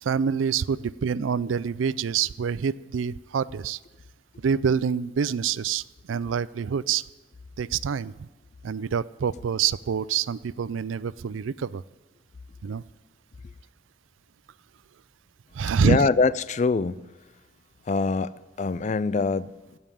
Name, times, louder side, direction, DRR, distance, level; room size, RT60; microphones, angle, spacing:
voice 1, 0.0-3.8 4.4-7.0 7.6-8.3 8.6-11.8 12.6-12.8 15.5-16.1, right 7 dB, 90° right, 0.4 m, -26 dB
voice 2, 15.8-17.1 17.8-19.8, left 4 dB, 40° left, 0.3 m, -24 dB
16.0 x 5.6 x 10.0 m
head